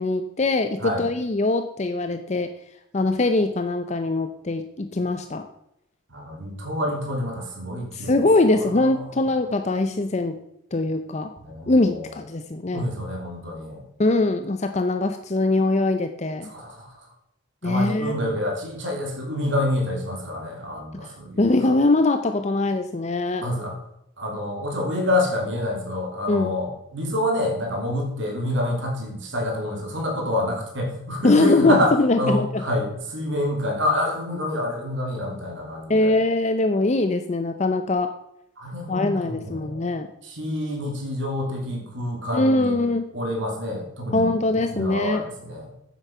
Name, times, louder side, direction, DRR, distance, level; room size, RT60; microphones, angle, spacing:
voice 1, 0.0-2.5 2.9-5.4 7.9-10.4 10.7-11.3 11.7-12.8 14.0-16.5 17.6-18.2 21.4-23.4 26.3-26.5 31.2-32.6 35.9-38.1 38.9-40.1 42.3-43.1 44.1-45.2, left 2 dB, 35° left, 8 dB, 0.6 m, -22 dB
voice 2, 6.1-8.1 8.8-9.1 11.4-12.1 12.7-13.8 16.5-17.0 17.6-21.7 23.4-23.7 24.2-36.1 38.6-39.8 40.2-42.8 43.1-45.7, left 1 dB, 70° right, 0 dB, 3.2 m, -27 dB
9.2 x 7.9 x 5.6 m, 0.81 s
head